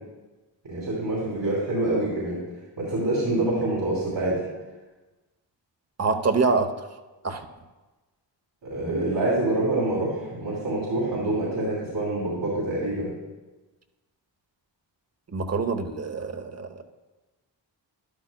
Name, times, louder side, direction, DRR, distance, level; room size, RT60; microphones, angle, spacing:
voice 1, 0.6-2.4 2.8-4.4 8.6-13.1, right 2 dB, 75° right, -6 dB, 3.1 m, -26 dB
voice 2, 6.0-6.9 7.2-7.4 15.3-16.8, right 4 dB, 35° right, 8 dB, 0.8 m, -25 dB
13.5 x 11.5 x 2.2 m, 1.2 s
wide cardioid pair, 85°, 45 cm